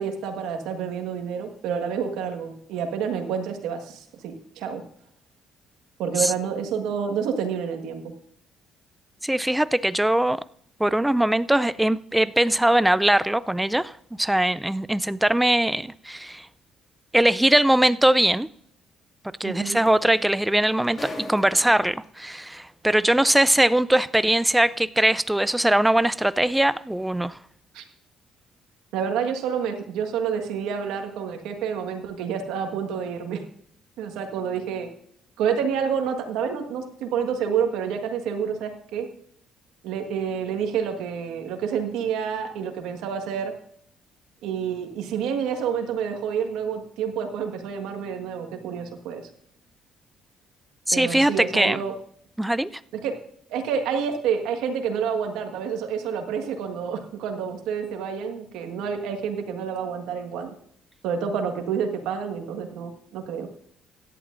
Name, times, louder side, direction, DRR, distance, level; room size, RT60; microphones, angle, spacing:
voice 1, 0.0-4.8 6.0-8.0 19.4-19.8 27.7-27.8 28.9-33.4 34.0-34.9 35.4-39.1 39.8-43.5 44.4-49.2 50.9-51.9 52.9-53.1 53.5-60.5 61.0-63.5, right 7 dB, 85° right, 1.6 m, -28 dB
voice 2, 9.2-10.4 10.8-13.9 14.2-16.5 17.1-18.5 19.4-27.4 50.9-51.8 52.4-52.8, right 1 dB, 5° right, 0.4 m, -21 dB
sound 1, 17.6-17.8 19.4-19.5 19.8-22.0 23.0-23.1, left 2 dB, 30° left, 3.3 m, -40 dB
17.0 x 11.0 x 2.6 m
supercardioid pair, 75°, 0 cm